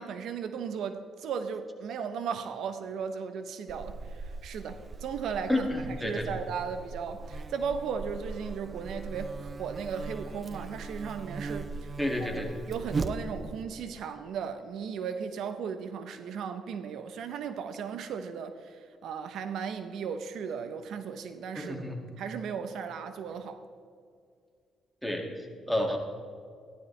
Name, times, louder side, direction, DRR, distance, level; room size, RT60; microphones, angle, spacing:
voice 1, 0.0-11.9 12.2-21.8 22.2-23.6, right 6 dB, 75° right, 9 dB, 0.7 m, -36 dB
Buzz, 3.7-13.6, right 4 dB, 35° right, 0.7 m, -39 dB
voice 2, 5.5-6.3 12.0-12.5 21.6-22.0 25.0-26.0, left 1 dB, ahead, 1 dB, 2.0 m, -30 dB
15.5 x 11.5 x 3.3 m, 2.2 s
cardioid pair, 90°, 0 cm